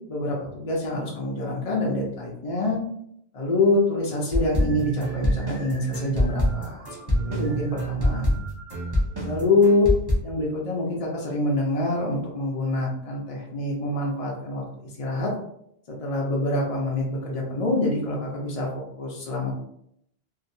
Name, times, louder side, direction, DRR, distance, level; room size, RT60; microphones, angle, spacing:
voice 1, 0.1-2.8 3.3-6.9 7.3-8.3 9.2-9.9 10.2-14.6 15.0-15.3 16.0-19.5, left 2 dB, 45° left, -3 dB, 0.5 m, -25 dB
sound 1, 4.3-10.2, equal, 25° right, 0.7 m, -25 dB
2.8 x 2.5 x 2.6 m, 0.74 s
omnidirectional pair, 1.1 m